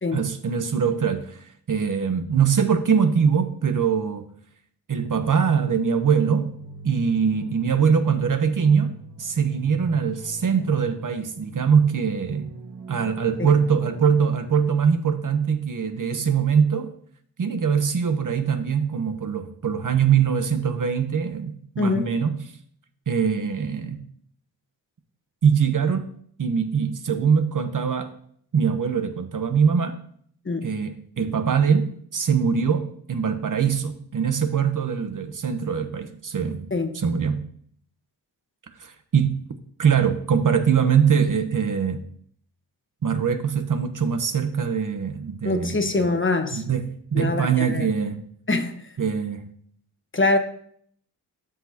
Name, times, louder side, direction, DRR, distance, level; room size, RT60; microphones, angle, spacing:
voice 1, 0.1-4.2 4.9-6.5 6.8-12.5 12.9-16.9 17.4-22.4 23.1-24.0 25.4-26.0 26.4-28.1 28.5-30.0 30.6-36.7 36.9-37.4 38.8-39.4 39.8-42.0 43.0-46.0 46.5-48.2 49.0-49.5, right 6 dB, 50° right, 1.0 m, -22 dB
sound 1, 5.7-14.8, right 1 dB, 65° right, 3.1 m, -41 dB
voice 2, 21.8-22.1 30.4-30.8 36.7-36.9 45.4-46.6 47.1-47.9 48.5-48.9 50.1-50.4, left 3 dB, 30° left, 1.2 m, -24 dB
12.5 x 6.2 x 2.9 m
cardioid pair, 70°, 42 cm